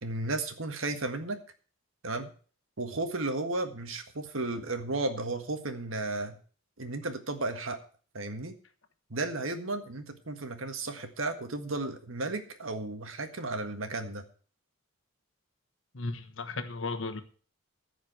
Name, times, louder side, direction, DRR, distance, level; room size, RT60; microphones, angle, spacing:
voice 1, 0.0-1.4 2.0-2.3 2.8-6.4 6.8-7.8 8.1-8.5 9.1-14.2, right 2 dB, 75° right, 1.7 m, -34 dB
voice 2, 15.9-17.2, left 3 dB, 65° left, 1.2 m, -35 dB
14.5 x 5.0 x 8.0 m
head